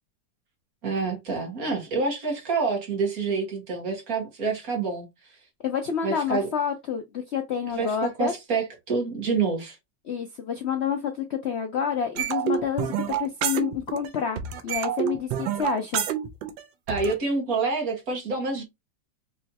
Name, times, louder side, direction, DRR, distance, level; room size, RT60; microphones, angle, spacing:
voice 1, 0.8-5.4 6.0-6.5 7.7-9.8 16.9-18.6, right 4 dB, 50° right, 1.9 m, -27 dB
voice 2, 5.6-8.3 10.1-16.0, left 8 dB, 85° left, 0.5 m, -29 dB
sound 1, 12.2-14.1 14.4-17.1, right 10 dB, 80° right, 1.4 m, -28 dB
5.2 x 3.1 x 2.8 m
omnidirectional pair, 2.0 m